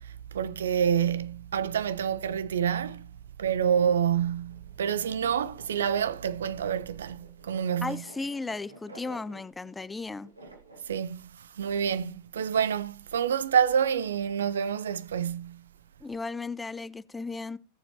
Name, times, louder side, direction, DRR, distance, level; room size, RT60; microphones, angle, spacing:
voice 1, 0.3-3.1 3.4-8.0 10.9-15.6, right 8 dB, 65° right, 0.6 m, -28 dB
sound 1, 4.2-10.9, right 2 dB, 80° right, 2.2 m, -52 dB
voice 2, 7.8-10.3 16.0-17.6, left 3 dB, 10° left, 0.4 m, -35 dB
17.5 x 7.1 x 2.8 m
figure-of-eight pair, 90°, 0 cm